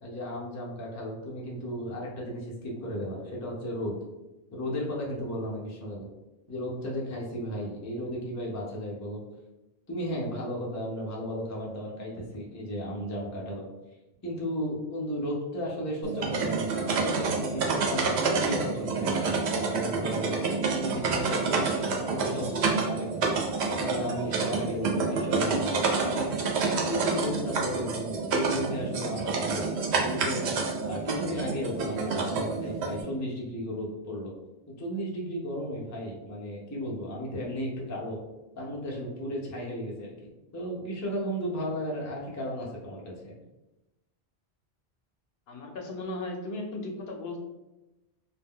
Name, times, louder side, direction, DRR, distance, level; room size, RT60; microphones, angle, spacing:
voice 1, 0.0-3.9 4.5-6.1 6.5-9.2 9.9-13.7 14.2-23.3 23.8-26.3 26.8-30.4 30.8-34.3 34.7-38.2 38.6-40.1 40.5-43.4, equal, 25° left, -3 dB, 0.4 m, -34 dB
sound 1, 16.0-33.0, right 4 dB, 80° right, 0.8 m, -28 dB
voice 2, 45.5-47.4, left 2 dB, 70° left, 1 dB, 0.8 m, -36 dB
2.2 x 2.2 x 3.5 m, 1.0 s
omnidirectional pair, 1.1 m